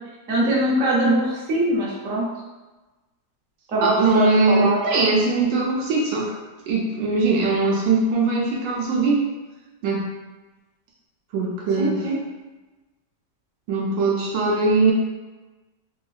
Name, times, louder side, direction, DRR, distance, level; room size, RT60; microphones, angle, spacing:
voice 1, 0.3-2.3 3.7-4.8 11.8-12.2, right 1 dB, 55° right, -5 dB, 1.1 m, -22 dB
voice 2, 3.8-6.3 6.7-9.2 9.8-10.0 11.3-12.0 13.7-14.9, right 3 dB, 85° right, -3 dB, 1.3 m, -21 dB
3.5 x 2.8 x 2.3 m, 1.2 s
omnidirectional pair, 1.9 m